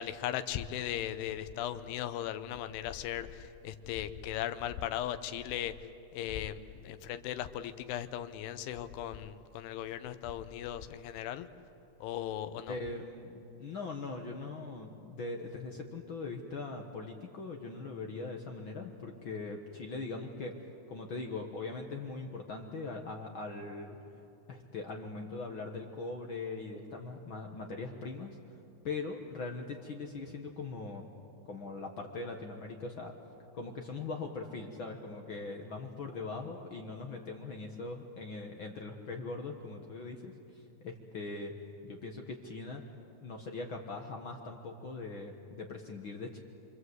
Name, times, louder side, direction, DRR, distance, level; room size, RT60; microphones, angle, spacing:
voice 1, 0.0-5.7 6.1-11.5 12.0-12.8, left 11 dB, 90° left, 11 dB, 2.9 m, -37 dB
voice 2, 12.7-20.6 20.9-24.0 24.5-28.6 28.8-31.1 31.5-33.2 33.5-41.5 41.8-42.8 43.2-46.4, left 3 dB, 65° left, 2 dB, 1.2 m, -41 dB
27.0 x 25.5 x 8.0 m, 2.7 s
omnidirectional pair, 4.5 m